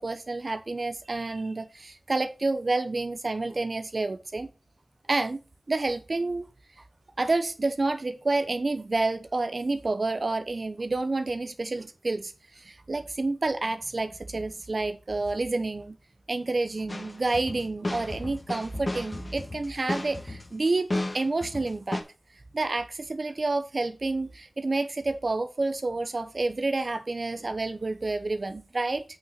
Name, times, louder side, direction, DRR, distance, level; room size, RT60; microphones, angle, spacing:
voice 1, 0.0-4.5 5.1-5.4 5.7-6.5 7.2-16.0 16.3-20.9 21.1-22.0 22.5-29.0, right 2 dB, 60° right, 0.8 m, -29 dB
sound 1, 16.9-22.0, left 1 dB, 40° left, 1.6 m, -33 dB
8.6 x 6.2 x 4.0 m
wide cardioid pair, 50°, 0 cm